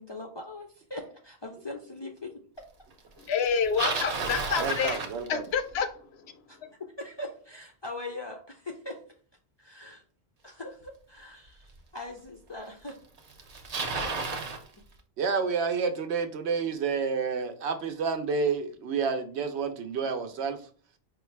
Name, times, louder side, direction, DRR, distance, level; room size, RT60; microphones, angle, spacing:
voice 1, 0.0-2.4 6.5-6.6 7.0-9.0 9.6-10.0 10.4-13.0, left 2 dB, 40° left, 1 dB, 0.4 m, -41 dB
voice 2, 3.2-5.0 5.3-6.3, left 7 dB, 75° left, 8 dB, 0.8 m, -28 dB
Bicycle, 3.4-5.8 10.8-10.9 11.8-11.9 12.9-13.0 13.2-14.6, right 4 dB, 45° right, 0.6 m, -32 dB
voice 3, 4.6-5.4 15.2-20.6, right 5 dB, 75° right, 7 dB, 0.9 m, -29 dB
5.0 x 2.3 x 3.1 m, 0.43 s
omnidirectional pair, 1.1 m